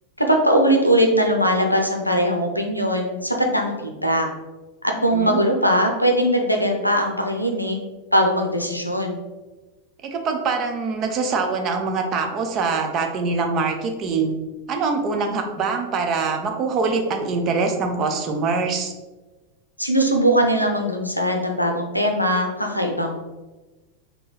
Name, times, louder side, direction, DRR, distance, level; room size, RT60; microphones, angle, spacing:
voice 1, 0.2-4.3 4.8-7.8 8.1-9.2 19.8-23.2, equal, 90° left, 2 dB, 0.6 m, -20 dB
voice 2, 4.9-5.4 10.1-14.3 14.7-18.9, right 4 dB, 35° right, 4 dB, 0.6 m, -24 dB
3.8 x 2.8 x 3.8 m, 1.2 s
figure-of-eight pair, 90°, 0 cm